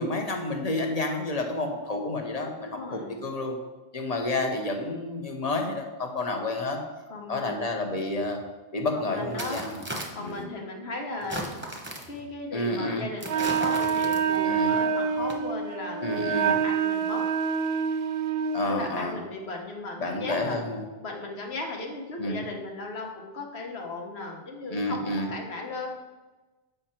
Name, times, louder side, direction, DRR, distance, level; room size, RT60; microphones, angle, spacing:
voice 1, 0.0-3.6 3.9-6.8 7.3-8.4 8.7-9.8 10.2-10.4 12.5-13.0 14.5-14.7 16.0-16.5 18.5-19.2 20.0-20.8 22.2-22.4 24.7-25.3, left 2 dB, 40° left, 3 dB, 1.0 m, -30 dB
voice 2, 2.6-3.2 7.1-7.7 8.9-9.6 10.1-11.5 12.1-17.2 18.6-20.6 21.0-25.9, left 2 dB, 80° left, 1 dB, 1.4 m, -36 dB
sound 1, 8.2-8.3 9.2-10.4 11.2-12.2 13.2-14.5 15.2-15.3, right 1 dB, 10° right, 0.9 m, -36 dB
Wind instrument woodwind instrument, 13.2-18.8, right 6 dB, 75° right, 0.8 m, -26 dB
7.8 x 5.1 x 4.4 m, 1.2 s
omnidirectional pair, 1.0 m